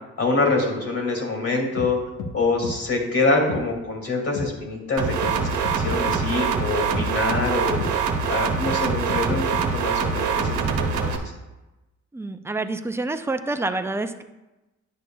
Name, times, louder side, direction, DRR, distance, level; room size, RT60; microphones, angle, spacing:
voice 1, 0.2-2.0 2.3-11.2, left 3 dB, 55° left, 1 dB, 2.4 m, -25 dB
sound 1, 1.8-1.9 2.2-2.3 2.6-2.8 3.5-3.6 4.4-4.5 5.2-5.4 5.6-6.2 6.9-7.1 7.8-7.9 8.7-8.8 9.1-9.7, left 3 dB, 90° left, 1.0 m, -31 dB
sound 2, 5.0-11.2, right 6 dB, 75° right, 1.0 m, -24 dB
voice 2, 12.1-14.2, right 2 dB, 10° right, 8 dB, 0.4 m, -27 dB
9.9 x 6.5 x 2.3 m, 1.0 s
cardioid pair, 90°, 30 cm